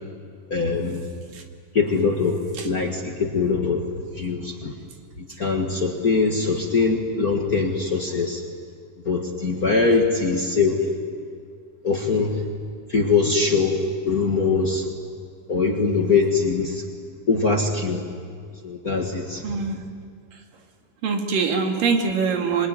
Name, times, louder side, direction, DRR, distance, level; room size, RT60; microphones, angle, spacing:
voice 1, 0.5-1.0 1.7-2.4 2.6-3.8 4.1-4.7 5.4-8.4 9.0-10.8 11.8-12.4 12.9-14.9 15.5-16.8 17.3-18.0 18.6-19.4, left 4 dB, 40° left, 2 dB, 1.5 m, -22 dB
voice 2, 19.4-19.8 21.0-22.7, right 5 dB, 90° right, 3 dB, 3.8 m, -23 dB
26.0 x 21.5 x 9.9 m, 2.2 s
omnidirectional pair, 3.8 m